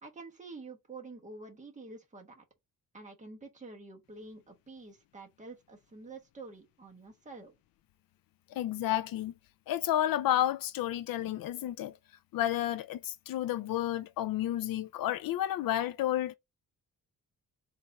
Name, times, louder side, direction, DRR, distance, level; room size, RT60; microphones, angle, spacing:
voice 1, 0.0-2.4 2.9-7.5, right 3 dB, 20° right, 1.2 m, -48 dB
voice 2, 8.5-9.3 9.7-11.9 12.3-16.4, left 12 dB, 80° left, 0.5 m, -31 dB
4.1 x 2.6 x 4.5 m
wide cardioid pair, 160°, 34 cm